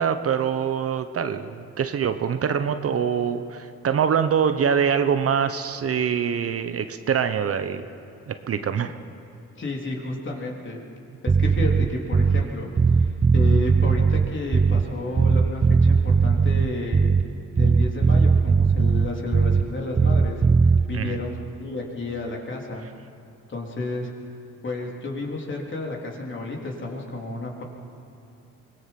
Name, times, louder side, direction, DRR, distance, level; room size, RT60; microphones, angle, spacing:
voice 1, 0.0-7.8 8.3-8.9 20.9-21.2, right 7 dB, 50° right, 9 dB, 1.0 m, -24 dB
voice 2, 9.6-10.8 11.2-17.1 17.6-20.4 20.9-22.9 23.5-24.1 24.6-27.6, left 2 dB, 40° left, 0 dB, 3.6 m, -31 dB
Bass guitar, 11.3-12.5 12.8-14.9 15.2-17.3 17.6-19.7 20.0-20.8, right 5 dB, 25° right, 0.6 m, -19 dB
24.0 x 19.5 x 5.9 m, 2.8 s
cardioid pair, 90°, 30 cm